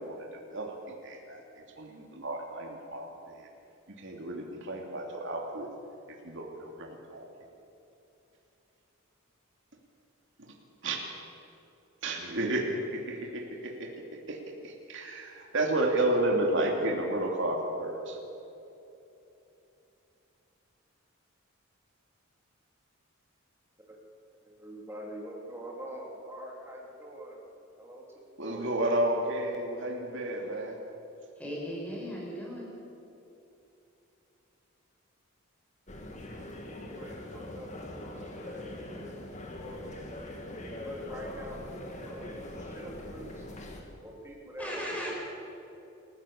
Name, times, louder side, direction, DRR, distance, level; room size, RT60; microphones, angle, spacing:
voice 1, 0.0-1.4 1.7-3.5 4.0-5.7 6.2-7.3 10.4-10.5 10.8-11.1 12.0-18.2 28.4-30.8, right 1 dB, 60° right, 1 dB, 2.8 m, -32 dB
voice 2, 24.4-27.4 27.8-28.7 36.9-38.6 38.9-39.9 40.6-41.7 42.0-43.5 44.0-45.1, equal, 10° right, -2 dB, 3.7 m, -45 dB
voice 3, 31.4-32.7 44.6-45.1, equal, 5° left, -4 dB, 6.0 m, -37 dB
sound 1, 35.9-43.8, left 1 dB, 35° left, 2.5 m, -42 dB
28.5 x 14.5 x 7.1 m, 2.9 s
head